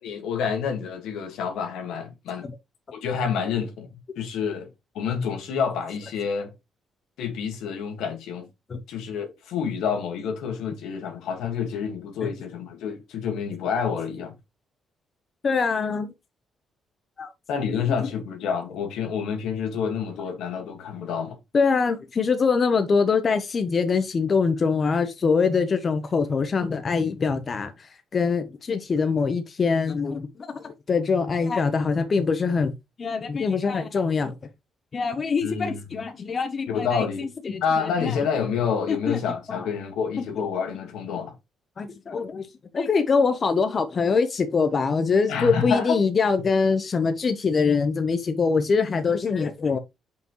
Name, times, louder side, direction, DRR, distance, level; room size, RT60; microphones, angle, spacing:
voice 1, 0.0-2.5 2.9-4.7 4.9-6.5 7.2-8.5 8.9-14.4 17.5-21.4 35.4-35.8 36.7-37.3 37.6-41.3 45.3-46.0, left 6 dB, 85° left, 1.8 m, -28 dB
voice 2, 15.4-16.1 17.2-17.3 21.5-27.9 28.1-30.3 30.5-32.7 33.0-34.3 34.9-38.1 38.9-39.2 39.5-39.7 41.8-42.5 42.7-49.8, left 5 dB, 40° left, 1.0 m, -23 dB
7.0 x 5.7 x 3.1 m
cardioid pair, 90°, 0 cm